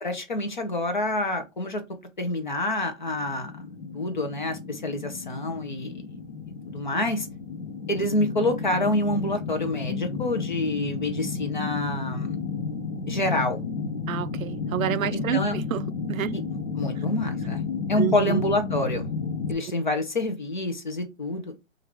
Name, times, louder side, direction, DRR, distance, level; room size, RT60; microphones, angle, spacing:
voice 1, 0.0-1.8 2.2-3.6 3.9-6.2 6.7-7.3 7.9-12.4 13.1-13.6 15.1-15.6 16.3-17.6 17.9-19.1 19.5-21.5, left 1 dB, 35° left, 0.7 m, -27 dB
sound 1, 3.1-19.5, left 5 dB, 80° left, 1.1 m, -32 dB
voice 2, 14.1-16.4 18.0-18.4, right 12 dB, 85° right, 0.5 m, -29 dB
4.7 x 2.5 x 3.3 m
hypercardioid pair, 175°, 40 cm